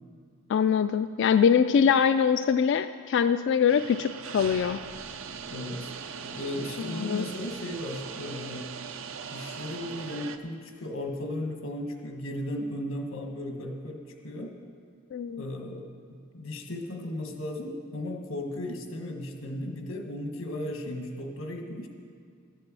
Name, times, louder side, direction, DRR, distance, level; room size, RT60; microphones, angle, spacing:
voice 1, 0.5-4.8 6.9-7.3 15.1-15.4, left 7 dB, 60° left, 10 dB, 0.3 m, -23 dB
sound 1, 3.7-10.4, right 6 dB, 80° right, 0.6 m, -40 dB
voice 2, 5.5-5.9 6.2-8.7 9.3-14.5 15.3-21.9, left 1 dB, 85° left, 3 dB, 1.5 m, -36 dB
12.0 x 7.7 x 7.4 m, 2.2 s
head